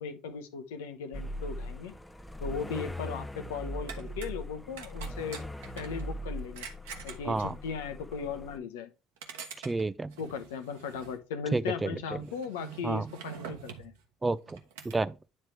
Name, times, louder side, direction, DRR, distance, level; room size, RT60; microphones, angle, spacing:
voice 1, 0.0-1.9 2.4-5.4 5.7-6.7 7.0-8.9 10.2-13.9, left 6 dB, 80° left, 0.8 m, -37 dB
sound 1, 1.1-8.6, equal, 10° left, 0.7 m, -40 dB
sound 2, 3.9-4.3 4.8-6.1 6.5-7.6 8.1-8.2 8.6-8.7 9.2-11.2 11.5-11.6 12.1-14.0 14.5-15.0, right 7 dB, 75° right, 1.1 m, -45 dB
voice 2, 7.2-7.6 9.6-10.1 11.5-12.2 12.8-13.1 14.2-14.6 14.8-15.1, right 3 dB, 20° right, 0.4 m, -30 dB
9.9 x 3.3 x 4.4 m
hypercardioid pair, 65°, 0 cm